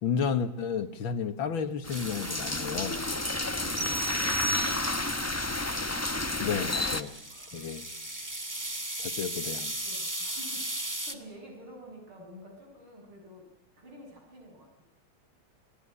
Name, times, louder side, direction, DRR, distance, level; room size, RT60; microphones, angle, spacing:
voice 1, 0.0-3.0 6.4-7.2 7.5-7.9 9.0-9.8, left 6 dB, 70° left, 10 dB, 2.3 m, -32 dB
sound 1, 1.8-7.0, left 2 dB, 15° left, 0.6 m, -31 dB
sound 2, 1.9-4.9 6.7-11.1, right 1 dB, 10° right, 1.7 m, -38 dB
voice 2, 3.5-5.5 7.2-7.8 8.5-8.8 9.8-13.5 13.8-14.8, equal, 85° right, 0 dB, 7.2 m, -49 dB
sound 3, 3.8-5.3, right 2 dB, 45° right, 2.1 m, -34 dB
28.0 x 18.5 x 9.9 m, 0.83 s
omnidirectional pair, 2.3 m